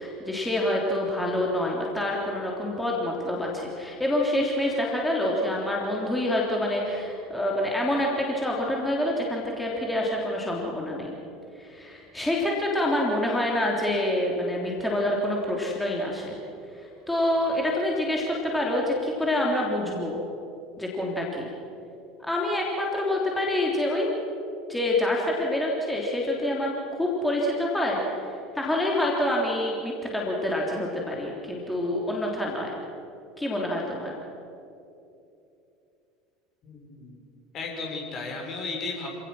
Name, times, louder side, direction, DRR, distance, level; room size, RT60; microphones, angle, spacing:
voice 1, 0.0-11.1 11.5-16.4 16.7-20.2 20.8-21.5 22.3-24.1 24.7-26.7 27.0-32.8 33.4-34.2, left 1 dB, 5° left, -3 dB, 3.4 m, -27 dB
voice 2, 36.6-37.2 37.5-39.1, left 3 dB, 40° left, 0 dB, 5.5 m, -34 dB
27.5 x 18.0 x 6.3 m, 2.8 s
figure-of-eight pair, 70°, 0 cm